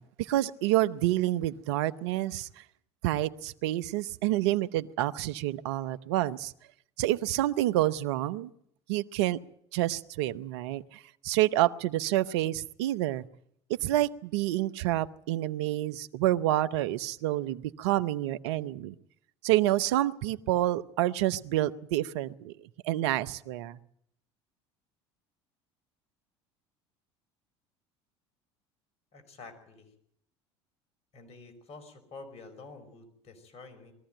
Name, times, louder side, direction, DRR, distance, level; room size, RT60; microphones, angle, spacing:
voice 1, 0.0-2.5 3.0-6.5 7.0-8.5 8.9-9.4 9.7-13.2 13.7-18.9 19.4-22.5 22.8-23.8, right 15 dB, 75° right, 15 dB, 0.8 m, -28 dB
voice 2, 29.1-29.9 31.1-33.9, left 3 dB, 50° left, 7 dB, 5.3 m, -48 dB
21.5 x 14.0 x 9.0 m, 0.70 s
hypercardioid pair, 75°, 14 cm